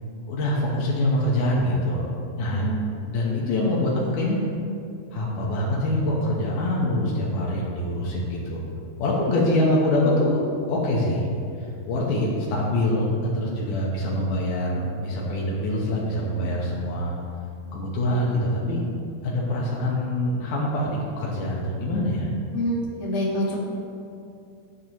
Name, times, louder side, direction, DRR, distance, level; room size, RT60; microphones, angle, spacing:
voice 1, 0.3-2.1 2.4-2.7 3.1-4.4 5.1-8.6 9.0-10.4 10.7-11.3 11.8-17.1 17.7-18.8 19.2-22.3, left 1 dB, 90° left, -5 dB, 1.8 m, -24 dB
voice 2, 2.5-2.9 22.5-23.6, equal, 50° left, -6 dB, 2.2 m, -26 dB
14.5 x 7.0 x 3.1 m, 2.5 s
omnidirectional pair, 5.6 m